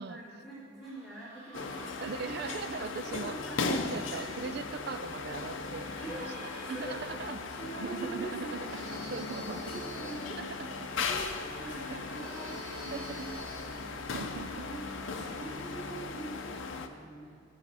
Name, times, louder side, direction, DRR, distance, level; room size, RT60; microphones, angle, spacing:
voice 1, 0.1-2.1 3.1-3.8 4.1-4.5 6.0-7.3 7.6-8.8 9.7-10.6 11.1-13.9 14.4-17.4, right 2 dB, ahead, -11 dB, 2.5 m, -44 dB
sound 1, 0.8-16.0, right 1 dB, 85° right, 2.0 m, -55 dB
sound 2, 1.5-16.9, left 4 dB, 65° left, 0.6 m, -38 dB
voice 2, 2.0-3.4 3.7-6.2 6.7-8.6 9.1-9.6 10.3-11.1 11.9-12.3 12.9-13.3 14.1-14.7, right 5 dB, 50° right, 11 dB, 0.4 m, -40 dB
sound 3, 8.6-10.3 12.1-13.8, right 2 dB, 35° right, 2.5 m, -47 dB
15.0 x 5.7 x 4.0 m, 2.3 s
head